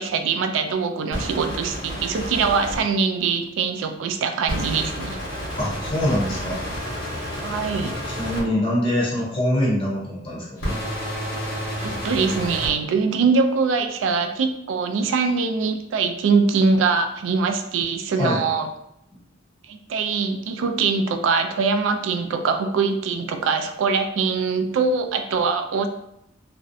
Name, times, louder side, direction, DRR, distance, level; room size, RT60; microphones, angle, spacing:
voice 1, 0.0-5.2 7.4-7.9 11.8-18.7 19.7-25.9, right 5 dB, 80° right, 7 dB, 0.3 m, -23 dB
sound 1, 1.1-2.8 4.5-8.4 10.6-12.7, equal, 85° left, 1.0 m, -30 dB
voice 2, 5.6-6.6 8.2-10.6 18.2-18.4, left 1 dB, 30° left, -6 dB, 0.6 m, -23 dB
2.5 x 2.0 x 2.5 m, 0.80 s
head